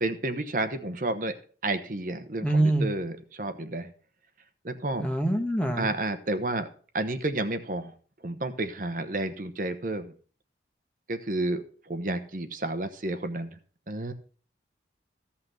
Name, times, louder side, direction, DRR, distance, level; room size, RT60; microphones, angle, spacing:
voice 1, 0.0-1.4 1.6-3.9 4.6-5.1 5.7-6.7 6.9-7.9 8.2-10.1 11.1-13.6 13.9-14.1, right 2 dB, 50° right, 9 dB, 0.9 m, -31 dB
voice 2, 2.4-2.9 5.0-5.9, right 1 dB, 5° left, 4 dB, 1.2 m, -24 dB
15.0 x 5.8 x 5.7 m, 0.42 s
head